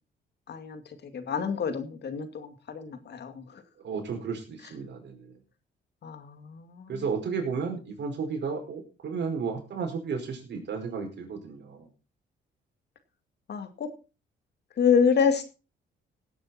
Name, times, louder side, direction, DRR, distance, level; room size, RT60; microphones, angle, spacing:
voice 1, 0.5-3.6 6.0-7.0 13.5-13.9 14.8-15.4, left 6 dB, 60° left, 8 dB, 2.3 m, -27 dB
voice 2, 3.8-5.4 6.9-11.9, right 5 dB, 60° right, 3 dB, 5.2 m, -33 dB
17.0 x 9.0 x 4.3 m, 0.33 s
cardioid pair, 90°, 20 cm